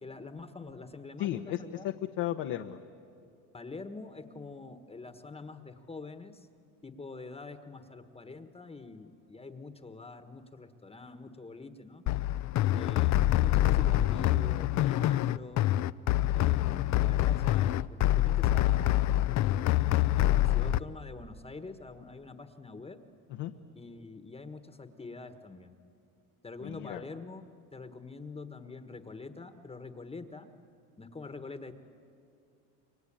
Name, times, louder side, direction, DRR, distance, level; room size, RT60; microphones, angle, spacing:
voice 1, 0.0-1.9 3.5-6.5 6.8-12.0 12.7-15.6 16.3-19.5 20.2-23.0 23.7-25.8 26.4-27.4 27.7-30.5 31.0-31.7, left 3 dB, 15° left, 8 dB, 1.4 m, -45 dB
voice 2, 1.2-1.6 1.8-2.8 23.4-23.5 26.6-27.0, left 13 dB, 70° left, 5 dB, 1.1 m, -34 dB
sound 1, 12.1-20.8, left 14 dB, 55° left, 0.6 m, -26 dB
28.0 x 23.0 x 8.8 m, 2.4 s
cardioid pair, 110°, 34 cm